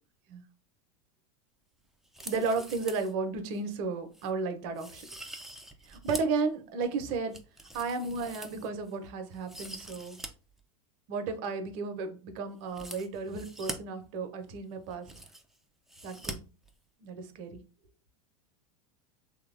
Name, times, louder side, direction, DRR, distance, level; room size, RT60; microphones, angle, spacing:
sound 1, 2.0-3.1 3.5-3.6 4.1-4.3 4.8-6.4 6.8-8.9 9.3-10.3 10.6-10.7 12.7-13.8 14.6-14.7 14.8-15.6 15.9-16.3 16.6-16.7, right 1 dB, ahead, 0.3 m, -44 dB
voice 1, 2.3-5.0 5.8-7.4 7.7-10.2 11.1-15.2 16.0-16.5 17.0-17.6, right 4 dB, 50° right, 0.6 m, -33 dB
2.8 x 2.1 x 2.5 m
hypercardioid pair, 85°, 17 cm